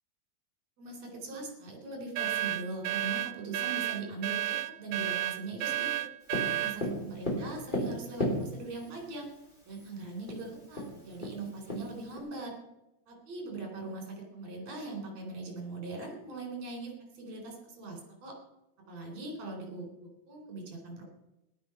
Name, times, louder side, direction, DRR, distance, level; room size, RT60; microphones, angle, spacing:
voice 1, 0.8-6.1 6.5-9.3 9.7-12.5 13.1-18.3 18.9-21.0, right 3 dB, 50° right, 2 dB, 4.6 m, -41 dB
sound 1, 2.2-6.8, right 13 dB, 80° right, 2.0 m, -32 dB
Tap, 6.3-8.9 9.9-10.0 10.3-10.4 10.7-12.2, left 1 dB, 15° left, 3.7 m, -33 dB
17.0 x 11.0 x 5.9 m, 0.90 s
omnidirectional pair, 4.2 m